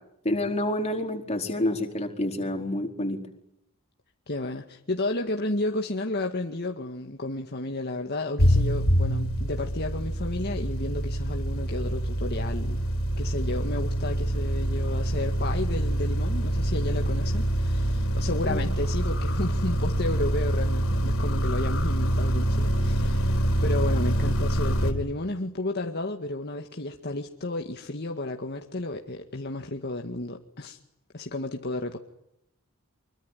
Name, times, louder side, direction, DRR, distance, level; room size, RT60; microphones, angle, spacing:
voice 1, 0.2-3.2 18.4-18.6, left 1 dB, 30° left, 3 dB, 4.5 m, -28 dB
voice 2, 4.3-12.8 13.2-30.8 31.1-32.0, left 2 dB, 50° left, 3 dB, 2.0 m, -32 dB
sound 1, 8.4-24.9, right 1 dB, 75° left, 4.4 m, -25 dB
25.5 x 23.5 x 9.3 m, 0.80 s
head